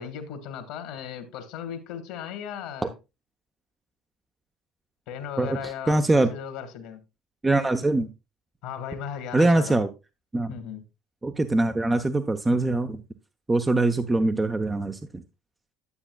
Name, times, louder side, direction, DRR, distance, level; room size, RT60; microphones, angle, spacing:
voice 1, 0.0-2.9 5.1-7.0 8.6-9.8 10.5-10.8, left 8 dB, 65° left, 1.5 m, -36 dB
voice 2, 5.4-6.3 7.4-8.1 9.3-9.9 10.3-10.5 11.2-13.0 13.5-15.2, right 2 dB, 20° right, 0.7 m, -23 dB
9.8 x 8.8 x 2.2 m
hypercardioid pair, 65°, 0 cm